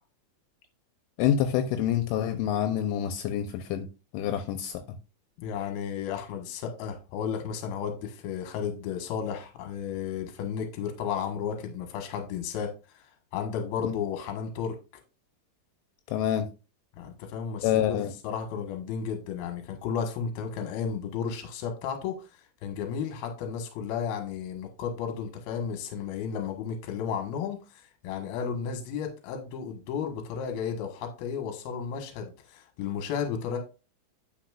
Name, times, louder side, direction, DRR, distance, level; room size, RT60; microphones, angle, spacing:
voice 1, 1.2-3.9 4.1-4.8 13.8-13.9 16.1-16.5 17.6-18.1, left 10 dB, 80° left, 3.1 m, -27 dB
voice 2, 5.4-13.0 13.3-14.8 17.0-18.0 18.2-22.3 22.6-33.6, left 7 dB, 65° left, 2.9 m, -33 dB
10.0 x 6.4 x 2.5 m
omnidirectional pair, 5.7 m